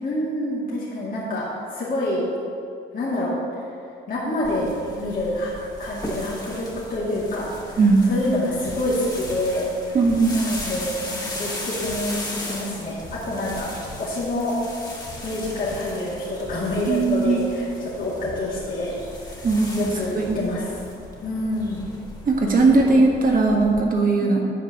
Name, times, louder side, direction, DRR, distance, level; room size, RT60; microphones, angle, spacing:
voice 1, 0.0-2.3 2.9-3.4 4.1-5.5 5.8-10.0 10.3-13.7 14.0-14.5 15.2-19.0 19.2-19.5 19.8-20.8 21.2-21.9 24.2-24.4, left 1 dB, 45° left, -8 dB, 2.2 m, -27 dB
sound 1, 4.4-23.8, left 1 dB, 20° left, 1.8 m, -36 dB
voice 2, 7.8-8.1 9.9-10.4 16.9-17.4 19.4-19.9 20.1-20.4 22.3-24.4, right 3 dB, 45° right, 0 dB, 1.6 m, -18 dB
8.5 x 4.7 x 7.0 m, 2.4 s
cardioid pair, 90°, 20 cm